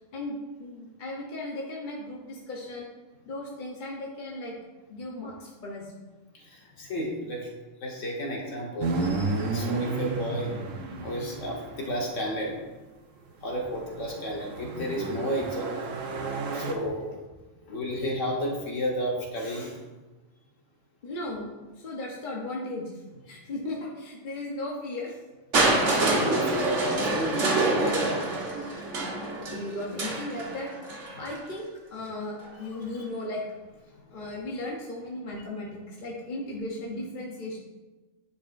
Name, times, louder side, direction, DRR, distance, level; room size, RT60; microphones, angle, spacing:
voice 1, 0.1-2.9 3.3-4.5 4.9-5.9 17.7-17.8 21.0-23.0 23.3-25.2 28.7-30.7 31.1-33.4 34.1-37.6, left 1 dB, 45° left, -3 dB, 0.9 m, -36 dB
voice 2, 6.3-7.5 7.8-10.5 11.0-12.6 13.4-15.8 16.5-17.1 17.7-19.8 25.6-28.3, equal, 70° left, -2 dB, 1.7 m, -32 dB
sound 1, 8.8-12.3 13.4-16.7, right 3 dB, 85° right, 1.1 m, -32 dB
Crushing, 25.5-31.4 32.4-32.5, right 2 dB, 65° right, 1.5 m, -27 dB
10.5 x 4.9 x 2.5 m, 1.2 s
omnidirectional pair, 1.3 m